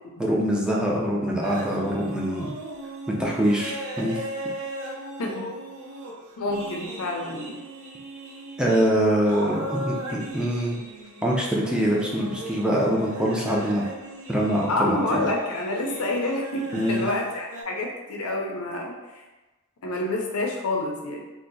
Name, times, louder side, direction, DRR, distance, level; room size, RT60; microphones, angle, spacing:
voice 1, 0.2-2.5 3.1-4.2 8.6-10.8 11.2-13.8 14.3-15.3 16.7-17.0, equal, 5° right, -3 dB, 0.4 m, -24 dB
sound 1, 1.4-17.6, right 1 dB, 80° right, 0.6 m, -37 dB
voice 2, 6.4-7.6 14.7-19.3 19.8-21.2, left 2 dB, 90° left, 1 dB, 0.6 m, -28 dB
2.7 x 2.2 x 3.9 m, 1.1 s
head